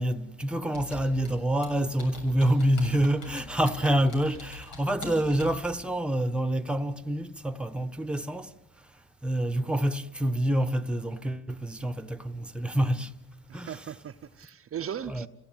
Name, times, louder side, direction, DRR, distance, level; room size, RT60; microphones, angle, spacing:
voice 1, 0.0-8.5 9.2-13.1 13.5-13.8 15.1-15.3, right 1 dB, 5° right, 1.1 m, -27 dB
Computer keyboard, 0.7-5.6, left 4 dB, 90° left, 7.2 m, -44 dB
voice 2, 13.5-15.3, right 9 dB, 45° right, 0.8 m, -38 dB
28.5 x 16.5 x 9.0 m
cardioid pair, 90°, 30 cm